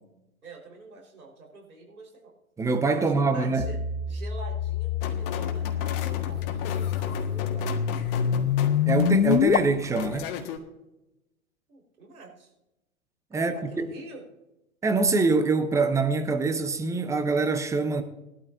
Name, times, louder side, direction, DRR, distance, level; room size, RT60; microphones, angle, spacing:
voice 1, 0.4-2.3 2.8-3.8 4.1-7.7 11.7-12.5 13.3-14.2, right 3 dB, 75° right, 4.6 m, -46 dB
voice 2, 2.6-3.7 8.9-10.3 13.3-13.9 14.8-18.0, right 3 dB, 5° right, 0.8 m, -24 dB
sound 1, 3.6-9.6, left 8 dB, 70° left, 0.9 m, -26 dB
sound 2, 5.0-10.6, left 6 dB, 40° left, 1.6 m, -36 dB
20.0 x 12.5 x 2.7 m
figure-of-eight pair, 110°, 43 cm